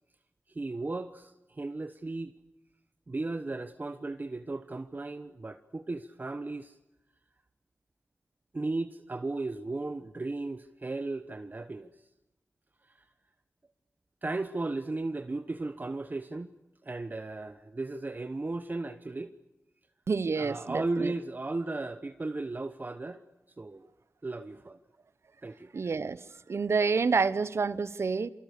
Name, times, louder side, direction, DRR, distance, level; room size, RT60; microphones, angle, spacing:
voice 1, 0.5-2.3 3.1-6.8 8.5-11.9 12.9-13.0 14.2-16.5 16.8-19.3 20.4-23.2 23.6-23.9 24.2-24.8 25.4-25.7, right 2 dB, 40° right, 1.1 m, -35 dB
voice 2, 20.1-21.1 25.7-26.2 26.5-28.3, right 4 dB, 70° right, 1.0 m, -28 dB
27.5 x 25.0 x 6.7 m
cardioid pair, 50°, 5 cm